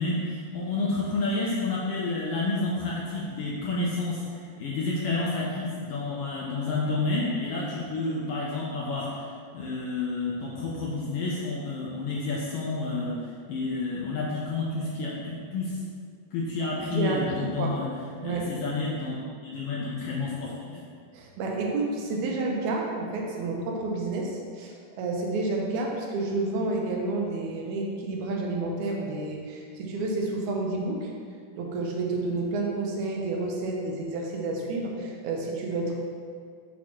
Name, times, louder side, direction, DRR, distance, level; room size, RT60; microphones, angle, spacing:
voice 1, 0.0-9.3 9.5-13.2 13.5-15.8 16.3-17.9 18.2-19.2 19.5-20.8, left 3 dB, 75° left, -5 dB, 1.4 m, -30 dB
voice 2, 16.9-17.7 18.2-18.4 21.1-31.1 31.6-35.9, right 2 dB, 85° right, 0 dB, 2.2 m, -30 dB
6.3 x 6.0 x 2.8 m, 2.2 s
omnidirectional pair, 3.4 m